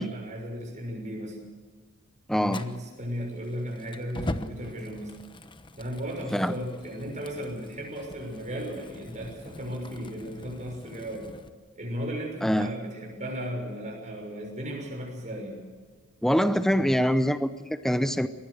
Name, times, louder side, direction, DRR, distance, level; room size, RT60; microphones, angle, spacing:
voice 1, 0.0-1.4 2.4-5.1 5.8-11.3 11.7-15.6, equal, 35° right, 0 dB, 6.3 m, -35 dB
voice 2, 2.3-2.6 6.3-6.5 12.4-12.7 16.2-18.3, equal, ahead, 11 dB, 0.6 m, -24 dB
Fire, 2.5-11.5, left 1 dB, 20° left, 0.9 m, -42 dB
23.0 x 19.0 x 6.6 m, 1.5 s
head